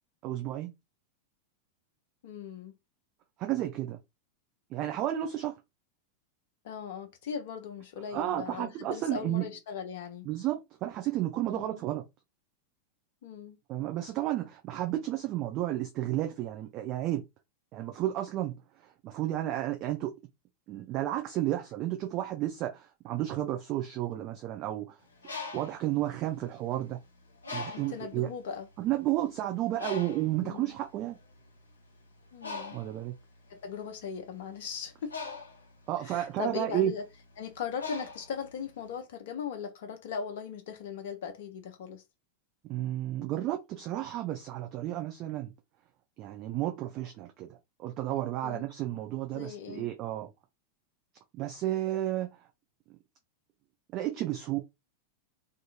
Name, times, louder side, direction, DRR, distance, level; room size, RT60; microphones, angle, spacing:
voice 1, 0.2-0.7 3.4-4.0 4.7-5.5 8.1-9.5 10.2-12.0 13.7-17.2 17.7-18.6 18.8-20.1 20.7-25.0 25.5-27.0 27.5-28.3 28.8-31.2 32.7-33.1 35.9-36.9 42.7-45.5 46.2-50.3 51.4-52.3 53.9-54.6, right 13 dB, 35° right, 0.4 m, -32 dB
voice 2, 2.2-2.7 6.6-10.3 11.5-11.8 13.2-13.6 27.7-28.7 30.4-30.7 32.3-32.8 33.5-35.2 36.0-37.0 37.4-42.0 48.4-48.7 49.3-49.9, left 6 dB, 55° left, 0.4 m, -39 dB
Bird, 25.0-26.9 27.4-28.1 28.8-28.9 29.2-38.9, left 4 dB, 75° left, 0.9 m, -42 dB
2.7 x 2.5 x 2.4 m
figure-of-eight pair, 90°, 0 cm